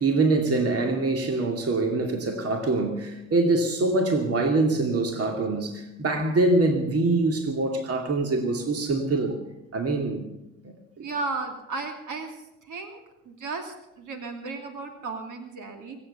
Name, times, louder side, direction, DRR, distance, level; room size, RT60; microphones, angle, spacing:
voice 1, 0.0-9.4 9.7-10.2 10.6-11.1, right 2 dB, 40° right, 2.5 m, -24 dB
voice 2, 11.0-12.3 12.7-13.0 13.2-16.0, right 3 dB, 55° right, 2.8 m, -34 dB
24.0 x 8.2 x 6.9 m
hypercardioid pair, 55°, 36 cm